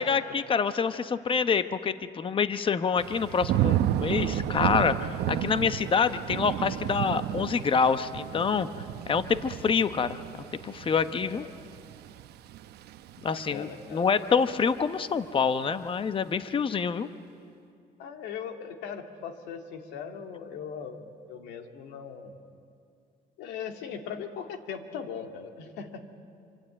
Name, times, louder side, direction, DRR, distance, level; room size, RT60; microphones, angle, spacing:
voice 1, 0.0-8.7 9.1-10.2 10.5-11.5 13.2-17.1, left 6 dB, 30° left, 11 dB, 1.0 m, -26 dB
Thunder / Rain, 3.0-13.9 14.3-14.8, right 11 dB, 75° right, 0.9 m, -32 dB
voice 2, 13.2-14.1 18.0-22.4 23.4-26.0, left 7 dB, 90° left, 5 dB, 2.3 m, -39 dB
26.0 x 25.0 x 8.8 m, 2.5 s
cardioid pair, 110°, 17 cm